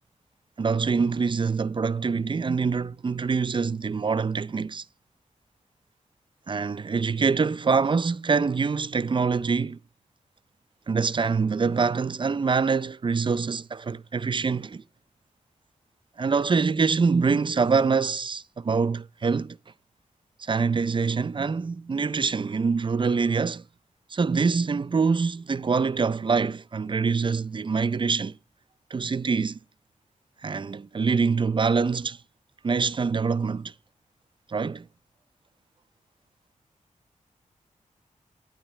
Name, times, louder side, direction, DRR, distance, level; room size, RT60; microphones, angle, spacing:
voice 1, 0.6-4.8 6.5-9.8 10.9-14.8 16.2-19.6 20.4-23.6 24.1-28.3 28.9-29.6 30.4-32.2 32.6-33.7 34.5-34.9, right 5 dB, 35° right, 0.5 m, -25 dB
11.5 x 10.0 x 3.2 m
cardioid pair, 70°, 13 cm